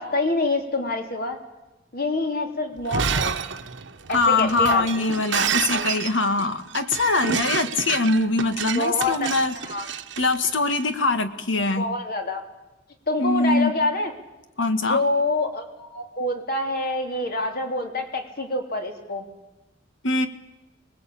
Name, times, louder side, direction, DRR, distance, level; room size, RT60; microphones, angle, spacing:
voice 1, 0.0-1.4 1.9-3.4 4.1-4.9 8.7-9.3 9.6-9.9 11.8-12.4 13.1-14.1 14.9-19.3, left 2 dB, 55° left, 4 dB, 3.4 m, -26 dB
Shatter, 2.8-10.8, right 6 dB, 70° right, 1.2 m, -29 dB
voice 2, 4.1-9.5 10.2-11.9 13.2-13.7 14.6-15.0 20.0-20.3, left 3 dB, 75° left, 9 dB, 1.9 m, -22 dB
24.0 x 20.5 x 8.6 m, 1.0 s
head